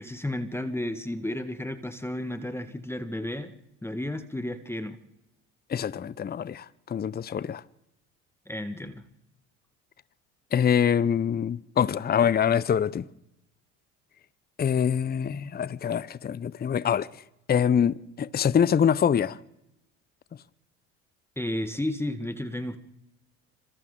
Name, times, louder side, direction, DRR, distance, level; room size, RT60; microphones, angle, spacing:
voice 1, 0.0-3.5 3.8-5.0 8.5-9.0 21.4-22.8, left 1 dB, 5° left, 1.8 m, -32 dB
voice 2, 5.7-7.6 10.5-13.1 14.6-17.1 17.5-19.4, left 8 dB, 25° left, 0.8 m, -25 dB
27.0 x 27.0 x 3.9 m
hypercardioid pair, 65°, 37 cm